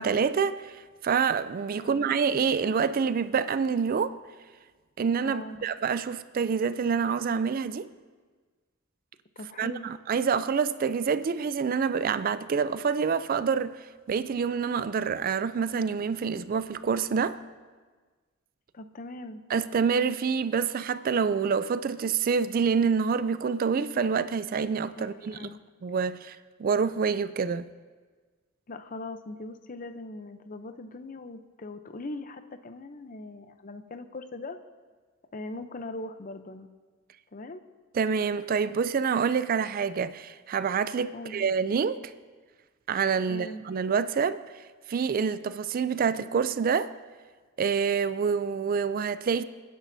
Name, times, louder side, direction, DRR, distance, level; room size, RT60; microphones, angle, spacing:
voice 1, 0.0-4.2 5.0-7.9 9.6-13.7 14.1-17.4 19.5-25.5 25.8-27.7 37.9-42.0 42.9-44.4 44.9-46.9 47.6-49.4, right 6 dB, 45° right, 0.4 m, -27 dB
voice 2, 1.8-2.1 5.2-5.6 9.4-9.9 18.7-19.4 25.0-25.6 28.7-34.6 35.3-36.7 37.3-37.6 41.1-41.5 43.3-43.7, left 2 dB, 40° left, 0.6 m, -40 dB
28.0 x 10.0 x 2.7 m
head